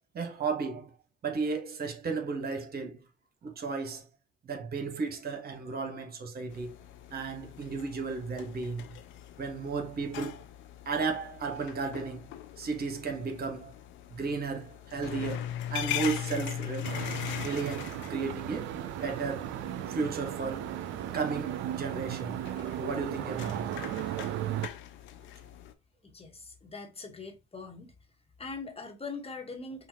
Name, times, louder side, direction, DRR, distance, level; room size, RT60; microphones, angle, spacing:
voice 1, 0.1-0.9 1.2-3.0 3.4-4.1 4.4-6.7 7.1-9.0 9.4-10.4 10.8-13.7 14.1-17.0 17.4-19.5 19.9-20.7 21.1-22.4 22.8-23.7, right 4 dB, 50° right, 1.3 m, -34 dB
sound 1, 6.5-25.7, left 11 dB, 70° left, 0.6 m, -41 dB
sound 2, 16.8-24.7, right 12 dB, 65° right, 0.5 m, -36 dB
voice 2, 26.0-27.9 28.4-29.9, left 4 dB, 30° left, 1.4 m, -42 dB
5.6 x 2.5 x 2.9 m
hypercardioid pair, 55°, 21 cm